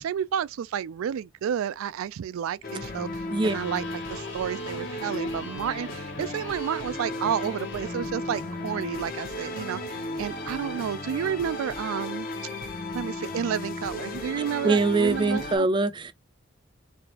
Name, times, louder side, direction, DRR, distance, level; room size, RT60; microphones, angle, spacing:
voice 1, 0.0-12.3 12.9-15.7, right 8 dB, 85° right, 0.3 m, -31 dB
sound 1, 2.6-15.6, left 1 dB, 45° left, 0.8 m, -35 dB
Electric guitar, 3.4-11.4, left 3 dB, 60° left, 1.4 m, -44 dB
voice 2, 14.6-16.1, right 3 dB, 25° right, 0.4 m, -23 dB
3.4 x 3.3 x 2.8 m
head